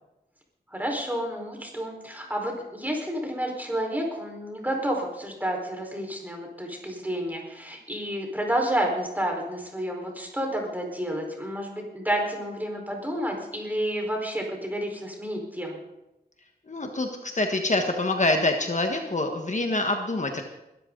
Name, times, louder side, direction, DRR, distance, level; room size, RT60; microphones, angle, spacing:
voice 1, 0.7-15.8, right 1 dB, 10° right, 1 dB, 4.6 m, -30 dB
voice 2, 16.7-20.4, left 2 dB, 45° left, 4 dB, 1.5 m, -26 dB
21.0 x 13.5 x 4.0 m, 0.92 s
wide cardioid pair, 90°, 17 cm